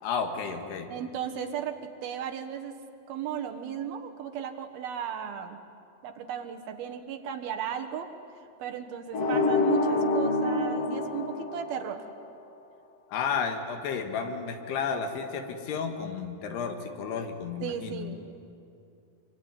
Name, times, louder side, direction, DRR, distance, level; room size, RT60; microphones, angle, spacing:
voice 1, 0.0-0.9 13.1-18.2, left 6 dB, 75° left, 6 dB, 3.8 m, -32 dB
voice 2, 0.9-2.8 3.1-5.6 6.0-8.1 8.6-12.0 17.6-18.4, right 8 dB, 70° right, 5 dB, 3.1 m, -35 dB
sound 1, 9.1-12.1, left 2 dB, 50° left, 2.2 m, -26 dB
25.0 x 24.5 x 9.7 m, 2.6 s
omnidirectional pair, 4.7 m